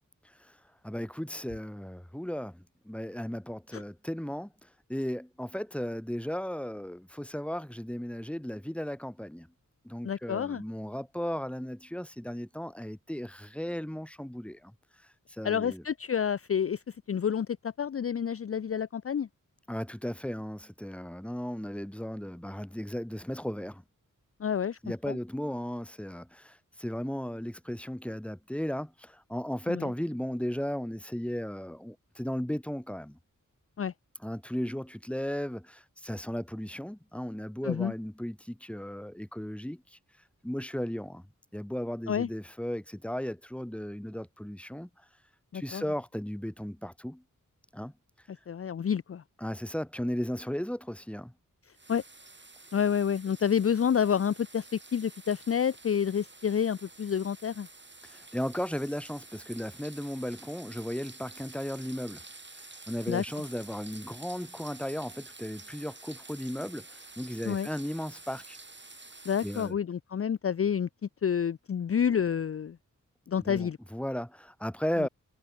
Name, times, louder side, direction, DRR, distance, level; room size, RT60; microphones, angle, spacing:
voice 1, 0.8-9.5 9.8-14.7 15.3-15.8 19.7-23.8 24.8-33.2 34.2-40.0 40.4-41.2 41.5-44.9 45.5-47.2 47.7-47.9 49.4-51.3 58.0-62.2 62.5-68.6 69.4-69.7 73.5-75.1, equal, 5° left, 2.2 m, -35 dB
voice 2, 10.0-10.6 15.4-16.8 17.1-19.3 24.4-24.8 25.1-25.2 29.7-29.9 33.8-33.9 37.6-37.9 42.1-42.3 45.5-45.8 48.5-49.2 51.9-52.0 52.7-57.7 63.1-63.2 67.4-67.7 69.3-70.9 71.2-72.8 73.3-73.8 75.0-75.1, left 8 dB, 45° left, 0.5 m, -29 dB
sound 1, 51.7-69.7, right 3 dB, 35° right, 5.1 m, -50 dB
wide cardioid pair, 65°, 32 cm